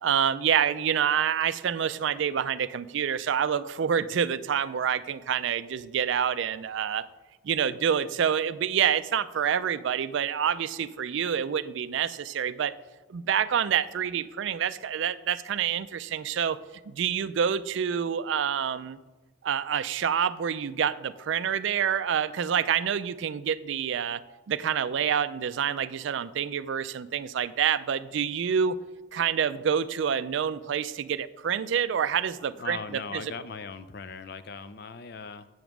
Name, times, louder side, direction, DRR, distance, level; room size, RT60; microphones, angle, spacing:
voice 1, 0.0-7.1 7.4-12.7 13.1-16.6 16.8-19.0 19.4-24.2 24.5-28.8 29.1-32.8 33.1-33.2, right 8 dB, 60° right, 15 dB, 0.3 m, -27 dB
voice 2, 32.6-35.5, left 5 dB, 50° left, 13 dB, 0.5 m, -39 dB
7.8 x 7.1 x 6.0 m, 1.2 s
head